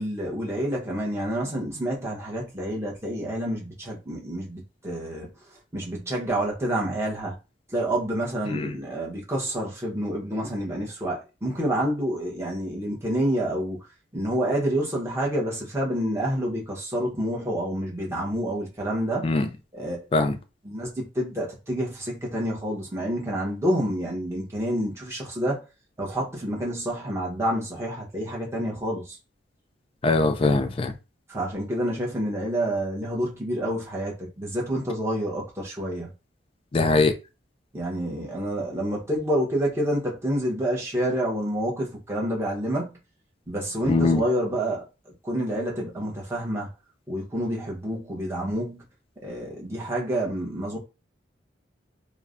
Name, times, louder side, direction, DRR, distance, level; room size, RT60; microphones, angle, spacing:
voice 1, 0.0-5.3 5.7-7.4 7.7-13.8 14.1-19.3 19.7-20.0 20.6-25.6 26.0-29.2 31.3-36.1 37.7-42.9 43.5-46.7 47.1-48.8 49.2-50.8, right 1 dB, 15° right, 0.8 m, -28 dB
voice 2, 30.0-30.9 36.7-37.1 43.9-44.2, left 3 dB, 30° left, 0.3 m, -21 dB
3.1 x 2.0 x 2.4 m
head